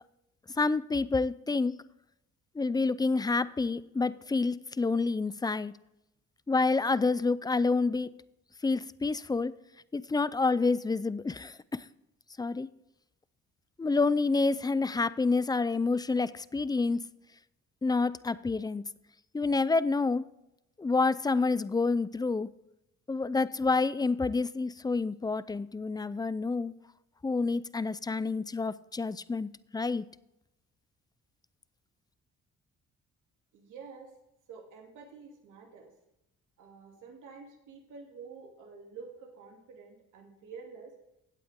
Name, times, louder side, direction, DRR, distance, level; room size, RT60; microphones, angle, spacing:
voice 1, 0.6-1.7 2.6-5.7 6.5-8.1 8.6-9.5 9.9-11.9 12.4-12.7 13.8-17.1 17.8-18.8 19.3-20.2 20.8-22.5 23.1-26.7 27.2-30.1, left 3 dB, 15° left, 0.4 m, -28 dB
voice 2, 33.5-34.1 34.5-35.9 36.6-40.9, right 5 dB, 85° right, 2.8 m, -49 dB
16.0 x 8.4 x 3.6 m
cardioid pair, 90°, 30 cm